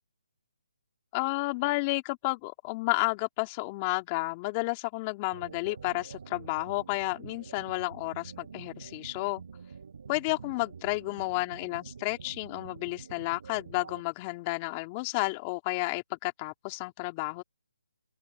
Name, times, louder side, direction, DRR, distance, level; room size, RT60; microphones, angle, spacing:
voice 1, 1.1-9.4 10.1-17.4, left 26 dB, 25° left, 2.8 m, -31 dB
sound 1, 5.3-14.0, right 6 dB, 60° right, 8.0 m, -47 dB
open air
hypercardioid pair, 150°, 0 cm